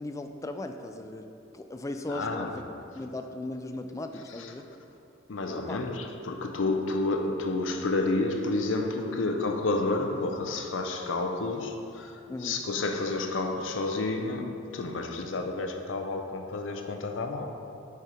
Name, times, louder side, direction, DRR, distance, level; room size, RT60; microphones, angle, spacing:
voice 1, 0.0-4.7 5.6-5.8 12.3-12.6, left 2 dB, 15° left, 0.3 m, -38 dB
voice 2, 2.1-2.6 4.4-4.5 5.3-17.6, left 2 dB, 85° left, 0.6 m, -30 dB
6.6 x 4.6 x 5.0 m
head